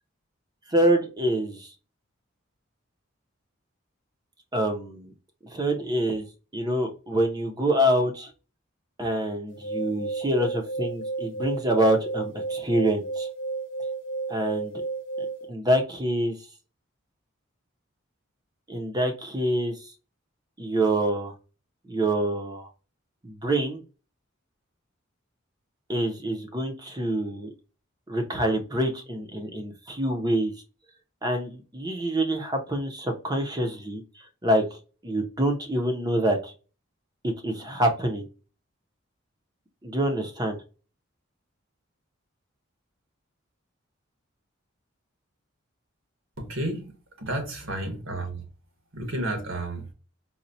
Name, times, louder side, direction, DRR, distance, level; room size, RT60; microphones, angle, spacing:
voice 1, 0.7-1.7 4.5-5.1 5.5-6.3 6.5-8.3 9.0-13.3 14.3-14.8 15.5-16.3 18.7-19.7 20.6-21.3 21.9-22.7 23.2-23.8 25.9-27.5 28.1-30.5 31.2-34.0 34.4-34.6 35.0-36.5 37.2-38.3 39.8-40.6, right 1 dB, 20° right, 0.6 m, -26 dB
sound 1, 9.5-15.5, right 3 dB, 60° left, 0.5 m, -32 dB
voice 2, 46.4-46.9 47.2-48.4 48.9-49.9, right 1 dB, 80° right, 1.3 m, -31 dB
4.2 x 2.1 x 2.6 m
head